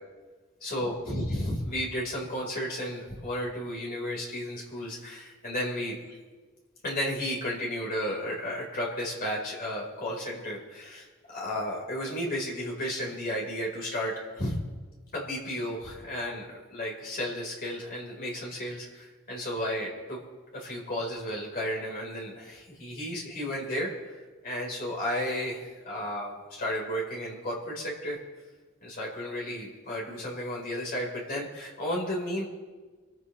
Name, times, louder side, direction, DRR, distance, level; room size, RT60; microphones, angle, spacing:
voice 1, 0.6-6.0 6.8-14.6 15.1-20.2 20.5-28.2 28.8-32.4, equal, 45° left, -3 dB, 4.0 m, -33 dB
26.5 x 13.5 x 3.2 m, 1.3 s
head